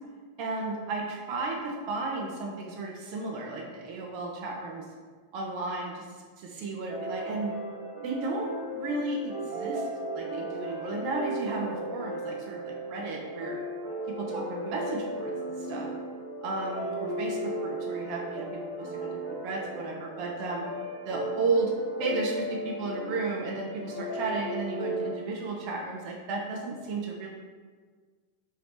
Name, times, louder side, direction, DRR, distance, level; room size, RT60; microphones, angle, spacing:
voice 1, 0.4-4.8 5.3-6.0 6.4-7.5 8.0-9.9 10.1-13.6 14.2-15.9 16.4-20.6 21.0-21.7 22.0-27.3, right 3 dB, 45° right, -1 dB, 0.5 m, -33 dB
sound 1, 6.9-25.2, right 1 dB, 65° right, 1.0 m, -36 dB
2.9 x 2.7 x 3.3 m, 1.5 s
figure-of-eight pair, 90°, 0 cm